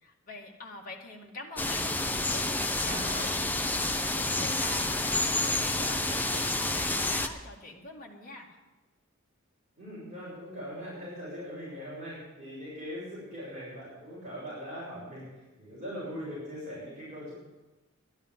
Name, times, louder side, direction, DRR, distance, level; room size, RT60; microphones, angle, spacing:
voice 1, 0.0-8.6, left 2 dB, 40° left, -1 dB, 2.1 m, -44 dB
sound 1, 1.6-7.3, left 2 dB, 10° left, 0.7 m, -29 dB
voice 2, 9.8-15.2 15.6-17.3, equal, 35° right, -8 dB, 5.9 m, -40 dB
12.5 x 10.5 x 7.4 m, 1.1 s
head